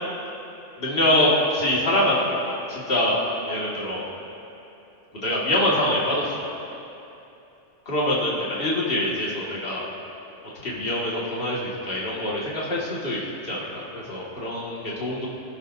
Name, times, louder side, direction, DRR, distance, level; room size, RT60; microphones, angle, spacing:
voice 1, 0.8-3.2 3.5-4.0 5.2-6.5 7.9-9.8 10.6-13.7 14.1-15.3, left 1 dB, 50° left, -6 dB, 2.2 m, -24 dB
22.0 x 11.5 x 2.7 m, 2.9 s
omnidirectional pair, 1.2 m